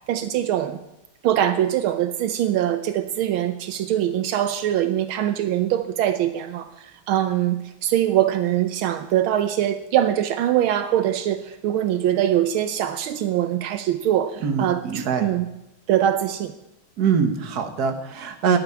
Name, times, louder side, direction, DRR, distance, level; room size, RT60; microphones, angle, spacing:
voice 1, 0.1-0.8 1.2-15.5 15.9-16.5, right 11 dB, 80° right, 10 dB, 1.5 m, -23 dB
voice 2, 14.4-15.3 17.0-18.6, right 6 dB, 50° right, 7 dB, 1.8 m, -23 dB
11.5 x 8.2 x 9.7 m, 0.88 s
omnidirectional pair, 2.3 m